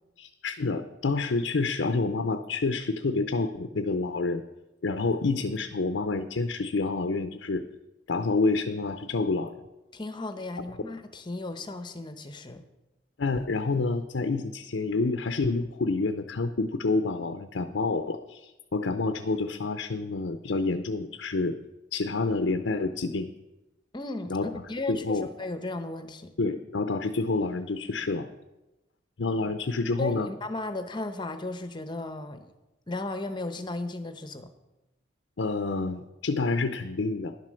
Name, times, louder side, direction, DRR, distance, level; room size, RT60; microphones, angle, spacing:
voice 1, 0.2-4.4 4.8-7.6 8.1-9.5 13.2-21.6 21.9-23.3 24.3-24.5 24.9-25.3 26.4-28.3 29.2-30.3 35.4-37.4, left 3 dB, 75° left, 8 dB, 0.6 m, -28 dB
voice 2, 9.9-12.6 23.9-26.3 30.0-32.5 32.9-34.5, left 2 dB, 25° left, 9 dB, 0.8 m, -35 dB
11.0 x 7.5 x 6.3 m, 1.0 s
head